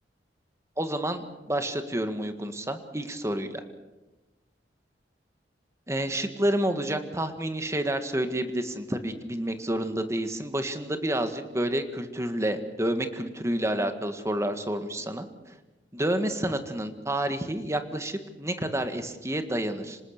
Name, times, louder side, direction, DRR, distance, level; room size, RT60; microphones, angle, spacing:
voice 1, 0.8-3.6 5.9-15.5 15.9-20.0, right 1 dB, 15° right, 8 dB, 1.8 m, -29 dB
26.5 x 19.5 x 6.7 m, 1.1 s
head